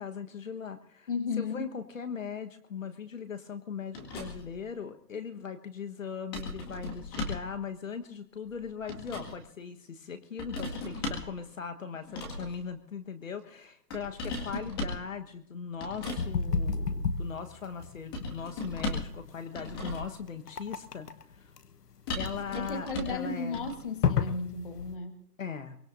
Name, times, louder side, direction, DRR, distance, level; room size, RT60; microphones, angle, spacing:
voice 1, 0.0-1.1 1.4-21.5 22.1-23.7 25.4-25.8, left 6 dB, 50° left, 7 dB, 1.4 m, -39 dB
voice 2, 1.1-1.7 22.5-25.2, left 4 dB, 30° left, 8 dB, 1.4 m, -34 dB
sound 1, 3.9-4.6 6.3-7.5 8.5-9.4 10.4-11.3 12.0-12.6 13.9-15.1 15.8-16.3 18.1-19.2 19.5-20.2 22.1-23.2 23.5-23.7, left 2 dB, 15° left, 1.9 m, -36 dB
sound 2, 16.2-25.0, left 5 dB, 70° left, 1.3 m, -32 dB
23.5 x 21.5 x 2.6 m, 0.71 s
hypercardioid pair, 175°, 49 cm